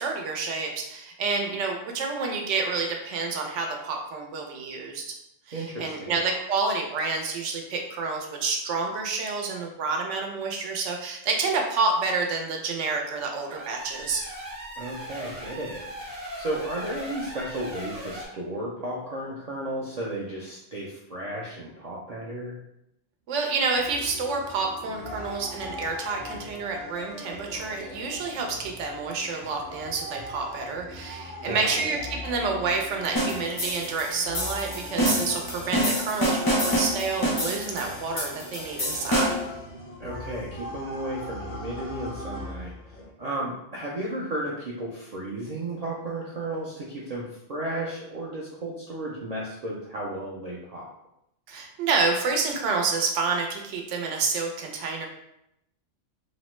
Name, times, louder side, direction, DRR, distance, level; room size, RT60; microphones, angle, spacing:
voice 1, 0.0-5.1 5.5-14.2 23.3-39.4 51.5-55.1, right 4 dB, 90° right, 2 dB, 0.9 m, -29 dB
voice 2, 5.5-6.2 14.8-15.9 16.4-22.6 31.4-32.0 40.0-42.7 43.2-50.9, right 1 dB, 65° right, -5 dB, 0.4 m, -34 dB
sound 1, 13.4-18.3, equal, 40° right, 0.8 m, -39 dB
sound 2, 23.7-43.1, left 1 dB, 90° left, 1.0 m, -41 dB
sound 3, 33.2-39.5, equal, 30° left, 0.4 m, -27 dB
2.8 x 2.0 x 3.0 m, 0.80 s
omnidirectional pair, 1.2 m